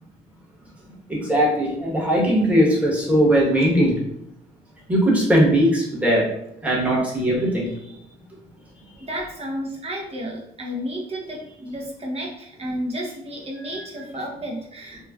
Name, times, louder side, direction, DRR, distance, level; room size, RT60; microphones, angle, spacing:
voice 1, 1.1-3.9 4.9-6.2 6.6-7.7 13.5-14.0, equal, 10° right, -5 dB, 1.2 m, -19 dB
voice 2, 9.0-15.1, equal, 35° right, -2 dB, 0.8 m, -32 dB
3.0 x 2.2 x 2.4 m, 0.77 s
cardioid pair, 80°, 17 cm